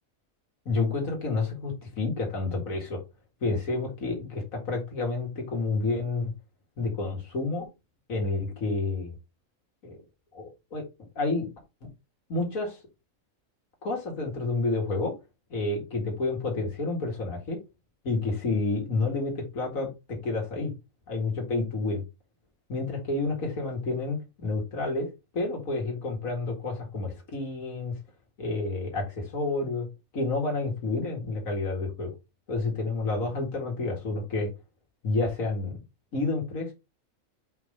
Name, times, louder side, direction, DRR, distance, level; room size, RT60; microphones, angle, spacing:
voice 1, 0.7-3.0 3.4-6.3 6.8-7.7 8.1-9.2 9.8-10.0 10.3-10.9 11.2-11.5 11.8-11.9 12.3-12.8 13.8-15.1 15.5-17.6 18.0-20.7 21.1-22.0 22.7-25.1 25.3-27.9 28.4-29.9 30.1-32.1 32.5-34.5 35.0-35.7 36.1-36.7, left 3 dB, 75° left, 0 dB, 2.4 m, -29 dB
5.3 x 3.8 x 5.0 m, 0.25 s
omnidirectional pair, 1.5 m